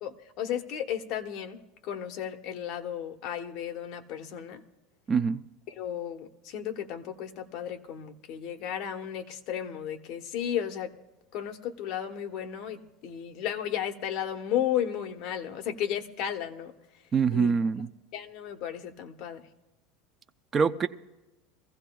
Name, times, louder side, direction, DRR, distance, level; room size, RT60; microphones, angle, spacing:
voice 1, 0.0-4.6 5.7-10.9 11.3-16.7 17.3-17.5 18.1-19.5, left 10 dB, 45° left, 5 dB, 1.0 m, -34 dB
voice 2, 5.1-5.4 17.1-17.9 20.5-20.9, right 5 dB, 20° right, 10 dB, 0.4 m, -24 dB
23.5 x 16.0 x 2.3 m, 1.1 s
supercardioid pair, 155°, 0 cm